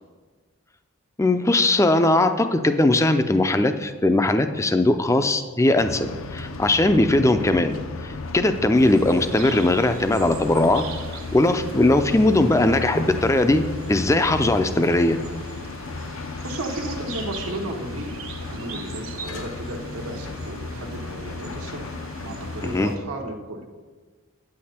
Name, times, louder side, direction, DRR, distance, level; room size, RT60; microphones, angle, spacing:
voice 1, 1.2-7.7 8.0-10.8 11.3-15.2 22.6-22.9, left 2 dB, 15° left, 9 dB, 0.4 m, -19 dB
sound 1, 5.8-22.9, left 3 dB, 70° left, 0.6 m, -35 dB
sound 2, 8.7-23.0, right 5 dB, 65° right, 1.2 m, -42 dB
voice 2, 16.0-23.7, right 1 dB, 80° right, -1 dB, 1.0 m, -34 dB
9.1 x 8.5 x 4.3 m, 1.4 s
head